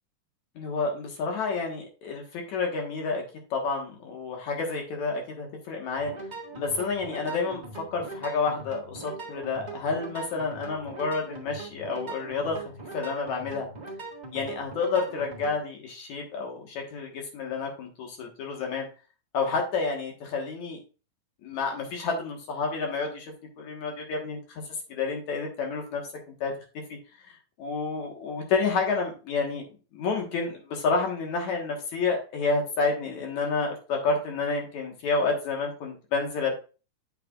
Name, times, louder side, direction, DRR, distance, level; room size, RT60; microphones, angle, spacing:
voice 1, 0.6-3.2 3.5-6.1 6.5-12.6 12.9-13.7 14.3-18.9 19.3-20.8 21.4-26.0 26.4-26.5 27.2-29.6 29.9-36.6, left 4 dB, 60° left, 1 dB, 2.7 m, -29 dB
sound 1, 6.0-15.6, right 3 dB, 30° right, 0.7 m, -41 dB
9.0 x 6.9 x 2.5 m, 0.34 s
omnidirectional pair, 4.0 m